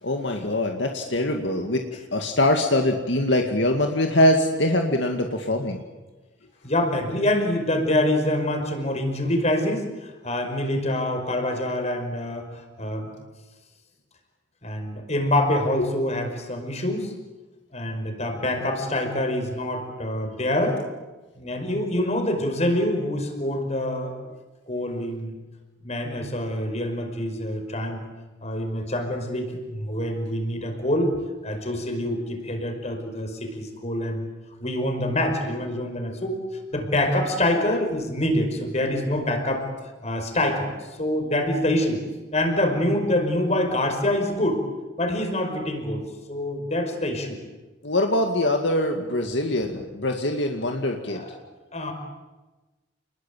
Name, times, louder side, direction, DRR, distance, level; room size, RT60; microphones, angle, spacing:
voice 1, 0.0-5.8 15.8-15.9 47.8-51.2, left 1 dB, 65° left, 3 dB, 2.3 m, -23 dB
voice 2, 6.6-12.5 12.8-13.1 14.6-17.1 17.7-20.8 21.4-24.2 24.7-25.3 25.8-28.0 28.4-31.2 31.4-34.3 34.6-36.4 36.7-39.7 40.0-40.7 41.0-42.0 42.3-44.6 45.0-47.4 51.1-51.4 51.7-51.9, left 1 dB, 35° left, 5 dB, 5.4 m, -25 dB
29.5 x 21.0 x 9.2 m, 1.2 s
head